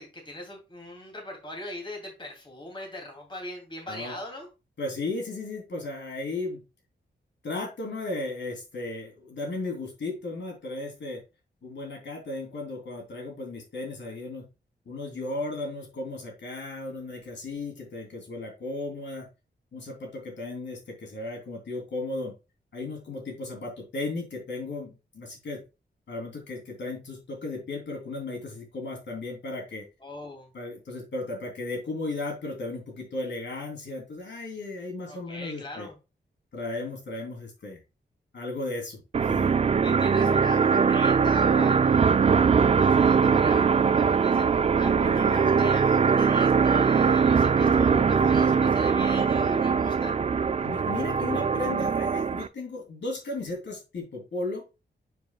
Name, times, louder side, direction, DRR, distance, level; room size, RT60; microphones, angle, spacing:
voice 1, 0.0-4.5 30.0-30.5 35.1-35.9 39.8-50.2, left 1 dB, 25° left, 1 dB, 2.7 m, -40 dB
voice 2, 3.8-4.2 4.8-6.6 7.4-11.2 11.6-14.4 14.8-19.3 19.7-22.3 22.7-25.6 26.1-29.9 30.5-35.9 36.5-37.8 38.3-39.6 50.6-54.6, left 2 dB, 70° left, 0 dB, 3.2 m, -35 dB
sound 1, 39.1-52.5, right 6 dB, 35° right, 0.3 m, -22 dB
9.2 x 5.2 x 2.3 m, 0.28 s
wide cardioid pair, 120°, 19 cm